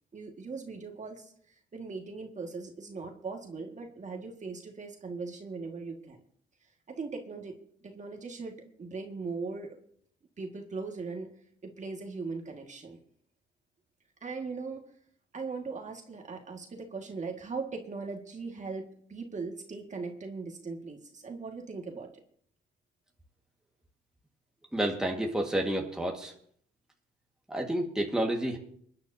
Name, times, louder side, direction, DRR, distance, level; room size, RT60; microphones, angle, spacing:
voice 1, 0.1-6.2 6.9-7.6 7.8-9.8 10.4-11.3 11.6-13.0 14.2-14.8 15.3-22.2, right 4 dB, 35° right, 3 dB, 1.9 m, -39 dB
voice 2, 24.7-26.3 27.5-28.6, right 1 dB, 5° right, 1 dB, 1.7 m, -30 dB
27.5 x 9.6 x 2.8 m, 0.63 s
cardioid pair, 90°, 20 cm